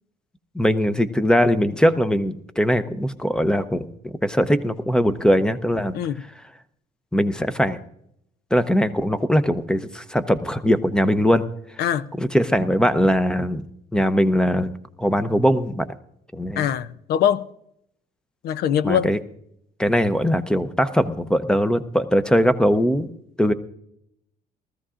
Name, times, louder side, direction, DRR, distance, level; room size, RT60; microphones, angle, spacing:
voice 1, 0.5-6.0 7.1-7.8 8.5-11.4 12.2-13.6 13.9-14.7 15.0-15.9 16.3-16.7 18.8-19.2 19.8-23.1 23.4-23.5, equal, 5° left, 0.7 m, -20 dB
voice 2, 5.9-6.2 11.8-12.1 16.6-17.5 18.4-19.1, left 9 dB, 70° left, 0.6 m, -22 dB
19.5 x 14.0 x 2.5 m
cardioid pair, 110°, 17 cm